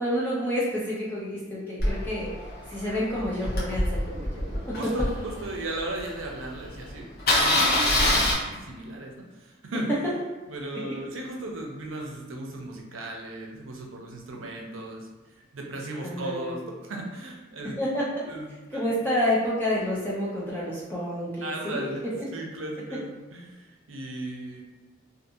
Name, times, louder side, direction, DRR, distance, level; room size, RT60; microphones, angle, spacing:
voice 1, 0.0-2.3 2.7-4.8 16.0-16.6 17.8-18.2 18.7-21.9, left 1 dB, 10° left, -7 dB, 0.5 m, -29 dB
Engine starting, 1.8-6.0 6.4-6.5 6.7-6.9 7.2-8.3, left 1 dB, 50° left, 0.8 m, -25 dB
voice 2, 4.8-9.9 10.5-15.1 15.5-17.8 18.2-18.9 21.4-22.0 22.3-24.6, right 2 dB, 75° right, 0 dB, 0.6 m, -36 dB
2.6 x 2.5 x 2.6 m, 1.3 s
head